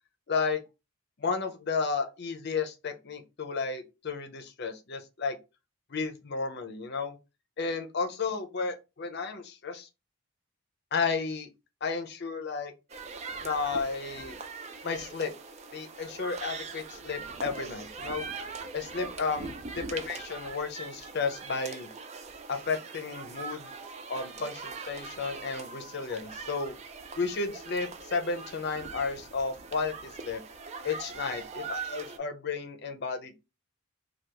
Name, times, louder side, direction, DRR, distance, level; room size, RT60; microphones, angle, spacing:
voice 1, 0.3-0.6 1.2-5.4 5.9-7.2 7.6-9.9 10.9-11.5 11.8-12.7 13.4-14.3 14.8-15.3 15.7-18.3 18.7-21.9 22.5-23.8 24.1-26.7 27.1-30.4 30.8-33.4, left 4 dB, 50° left, 0.6 m, -33 dB
sound 1, 12.9-32.2, right 4 dB, 30° right, 0.3 m, -42 dB
3.4 x 2.3 x 2.9 m
head